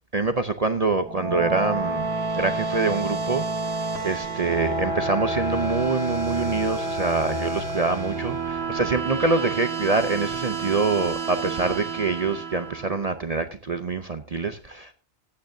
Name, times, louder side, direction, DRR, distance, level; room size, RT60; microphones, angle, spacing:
voice 1, 0.1-2.1 2.3-3.4 4.0-14.9, right 3 dB, 40° right, 9 dB, 0.7 m, -25 dB
sound 1, 0.9-13.3, right 3 dB, 55° right, 1.8 m, -29 dB
18.5 x 9.2 x 2.7 m, 0.35 s
omnidirectional pair, 1.3 m